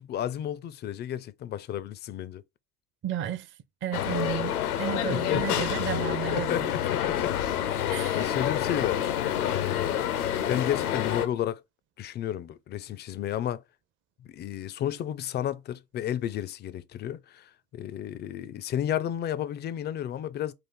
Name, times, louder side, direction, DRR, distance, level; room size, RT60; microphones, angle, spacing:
voice 1, 0.0-2.4 5.1-5.6 6.3-11.6 12.0-13.6 14.2-20.5, left 10 dB, 25° left, 0.3 m, -32 dB
voice 2, 3.0-3.5 3.8-6.7 7.9-8.3, right 10 dB, 30° right, 0.5 m, -33 dB
sound 1, 3.9-11.3, left 10 dB, 85° left, 0.7 m, -28 dB
4.3 x 2.4 x 3.7 m
hypercardioid pair, 65°, 44 cm